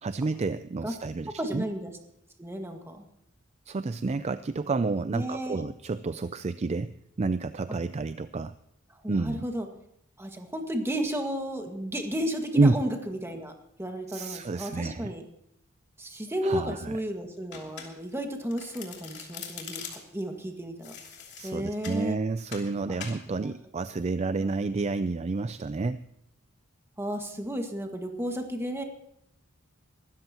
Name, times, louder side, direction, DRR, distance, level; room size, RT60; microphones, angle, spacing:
voice 1, 0.0-1.6 3.7-6.9 7.2-8.5 9.1-9.4 12.5-12.7 14.1-15.1 16.4-16.9 21.4-26.0, right 3 dB, 30° right, 12 dB, 0.4 m, -29 dB
voice 2, 1.4-1.9 2.4-3.1 5.1-5.6 8.9-9.7 10.2-13.5 13.8-15.2 16.0-20.9 21.4-22.2 22.9-23.0 23.3-23.5 24.4-24.5 27.0-28.8, equal, 10° right, 3 dB, 1.8 m, -33 dB
Domestic sounds home sounds, 17.5-18.2 18.5-20.2 20.8-22.0 22.5-22.7 23.0-23.2, left 7 dB, 55° left, 2.9 m, -42 dB
23.5 x 13.0 x 3.0 m, 0.77 s
head